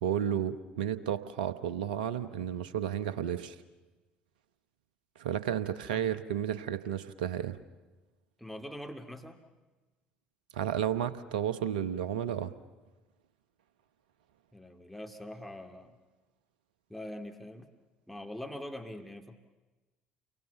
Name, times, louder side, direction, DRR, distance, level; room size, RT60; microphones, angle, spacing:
voice 1, 0.0-3.5 5.2-7.6 10.5-12.5, right 9 dB, 80° right, 14 dB, 1.0 m, -32 dB
voice 2, 8.4-9.4 14.5-16.0 16.9-17.7 18.1-19.4, left 1 dB, 5° left, 5 dB, 2.5 m, -43 dB
30.0 x 23.5 x 7.0 m, 1.2 s
hypercardioid pair, 55°, 5 cm